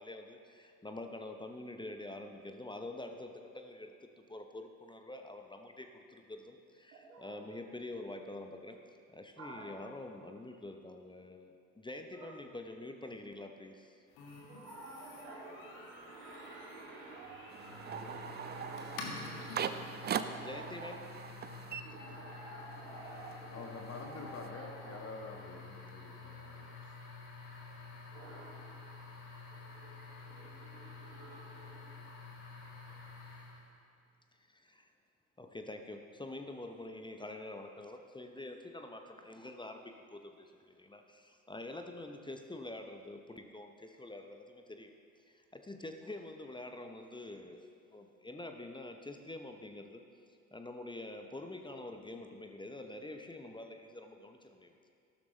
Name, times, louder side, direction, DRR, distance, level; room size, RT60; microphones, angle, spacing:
voice 1, 0.0-8.8 9.1-14.0 20.4-21.1 34.5-34.9 35.4-45.0 45.3-50.0 50.5-54.8, left 2 dB, 10° left, 5 dB, 0.9 m, -46 dB
voice 2, 6.9-7.3 9.4-9.6 12.1-12.3 14.5-20.9 21.8-25.0 28.1-28.7 29.5-31.8, right 2 dB, 80° right, -5 dB, 2.8 m, -51 dB
sound 1, 14.1-33.7, left 4 dB, 60° left, 2.0 m, -49 dB
sound 2, 17.5-22.6 22.9-24.5, right 8 dB, 25° right, 0.5 m, -41 dB
voice 3, 23.5-27.0, left 3 dB, 35° left, 1 dB, 1.7 m, -47 dB
14.0 x 12.5 x 3.3 m, 2.3 s
figure-of-eight pair, 60°, 42 cm